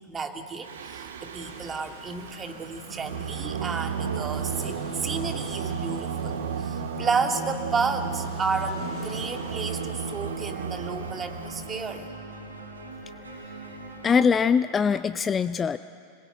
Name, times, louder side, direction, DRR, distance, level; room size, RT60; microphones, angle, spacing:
voice 1, 0.0-12.1, right 4 dB, 20° right, 5 dB, 2.2 m, -32 dB
Singing, 0.6-12.0, right 6 dB, 60° right, 1.8 m, -33 dB
sound 1, 1.4-9.8, left 4 dB, 40° left, 7.1 m, -49 dB
sound 2, 8.7-14.3, right 2 dB, 80° right, 3.9 m, -42 dB
voice 2, 14.0-15.8, left 6 dB, 20° left, 13 dB, 0.5 m, -22 dB
29.0 x 21.5 x 9.2 m, 2.5 s
figure-of-eight pair, 90°, 0 cm